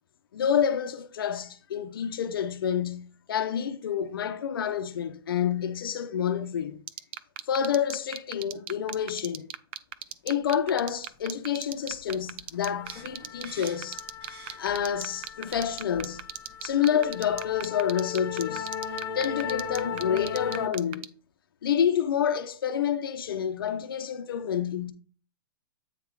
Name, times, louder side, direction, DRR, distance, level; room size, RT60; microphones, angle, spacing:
voice 1, 0.3-6.8 7.5-9.5 10.2-14.0 14.6-16.2 16.6-18.7 19.1-21.0 21.6-24.9, left 8 dB, 65° left, 0.8 m, -28 dB
sound 1, 6.9-21.1, right 12 dB, 30° right, 0.3 m, -35 dB
sound 2, 11.9-12.1 12.4-20.7, left 8 dB, 20° left, 1.1 m, -37 dB
sound 3, 12.8-14.9 15.3-16.0 16.6-16.9 17.1-17.3 18.1-18.2 18.4-19.4, right 3 dB, 75° right, 3.9 m, -50 dB
8.3 x 3.7 x 4.7 m
hypercardioid pair, 170°, 13 cm